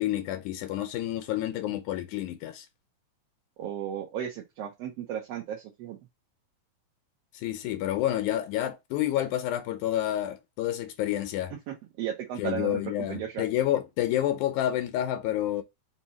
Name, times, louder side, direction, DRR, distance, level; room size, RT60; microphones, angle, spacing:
voice 1, 0.0-2.7 7.3-11.5 12.4-15.6, left 12 dB, 85° left, 2.0 m, -29 dB
voice 2, 3.6-6.0 11.7-13.4, right 9 dB, 65° right, 1.8 m, -35 dB
5.5 x 2.6 x 2.9 m
omnidirectional pair, 3.5 m